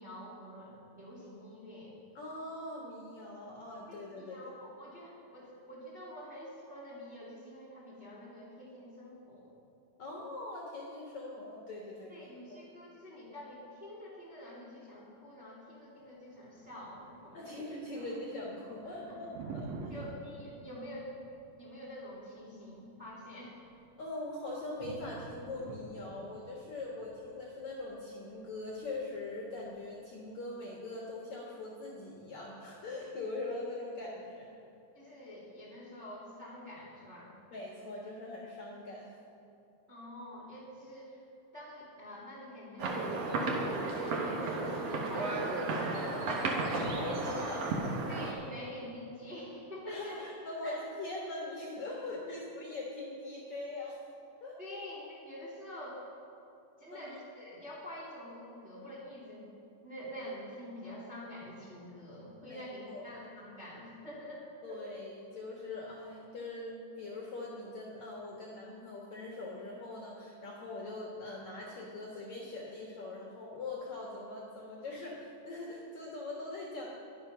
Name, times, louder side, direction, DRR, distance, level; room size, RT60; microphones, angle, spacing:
voice 1, 0.0-1.9 3.9-9.5 12.1-17.6 18.0-18.2 19.1-19.2 19.9-21.1 21.6-23.6 34.9-37.3 39.9-41.2 41.5-47.0 47.5-47.6 48.1-50.2 50.6-50.8 54.6-56.0 56.8-59.5 59.8-64.8, left 1 dB, 20° right, -5 dB, 2.2 m, -47 dB
voice 2, 2.1-4.4 10.0-12.6 17.3-19.3 19.5-20.0 24.0-34.5 37.5-39.1 46.9-47.6 49.9-54.0 54.4-54.8 56.9-57.2 62.5-63.2 64.6-76.9, left 2 dB, 55° left, -3 dB, 2.3 m, -42 dB
Thunder, 16.0-30.0, right 4 dB, 90° right, 3.4 m, -50 dB
sound 1, 42.8-48.3, right 3 dB, 65° right, 1.6 m, -33 dB
22.0 x 7.5 x 5.7 m, 2.6 s
omnidirectional pair, 4.9 m